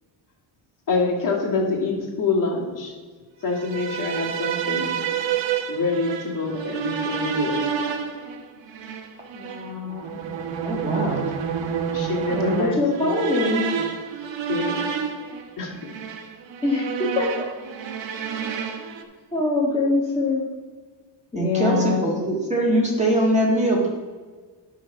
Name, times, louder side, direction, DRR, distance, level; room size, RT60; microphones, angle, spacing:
voice 1, 0.9-2.9 3.4-5.0 5.7-7.7 10.9-11.0 11.9-12.8 13.0-13.1 14.5-14.8 15.6-15.9, left 3 dB, 40° left, -2 dB, 2.2 m, -26 dB
sound 1, 3.5-19.0, right 8 dB, 60° right, 1.2 m, -29 dB
voice 2, 9.3-10.2 12.3-13.7 16.6-17.5 19.3-20.5 21.3-22.1, left 3 dB, 10° left, -6 dB, 1.6 m, -24 dB
voice 3, 10.6-11.3 21.4-23.9, right 1 dB, 15° right, -3 dB, 1.7 m, -22 dB
11.0 x 3.9 x 5.6 m, 1.5 s
cardioid pair, 125°, 49 cm